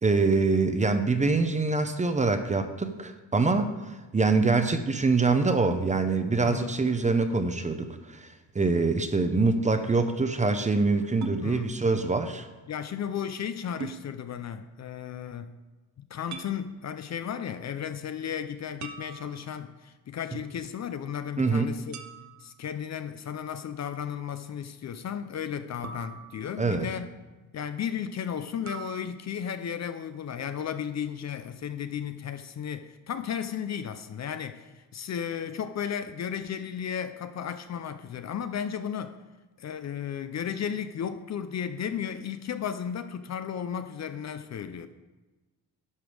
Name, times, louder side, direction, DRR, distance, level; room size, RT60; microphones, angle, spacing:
voice 1, 0.0-8.3 8.5-12.5 21.4-21.7 26.6-26.9, right 3 dB, 20° right, 8 dB, 0.6 m, -25 dB
voice 2, 6.4-6.8 11.4-11.7 12.7-15.6 16.0-22.0 22.4-27.1 27.5-39.2 39.6-44.9, left 8 dB, 45° left, 10 dB, 0.5 m, -34 dB
sound 1, 11.2-11.4 13.8-14.0 16.3-16.6 18.8-19.7 21.9-22.5 25.8-26.8 28.7-29.0, right 7 dB, 45° right, 0.8 m, -41 dB
11.0 x 5.2 x 6.4 m, 1.2 s
cardioid pair, 150°, 40 cm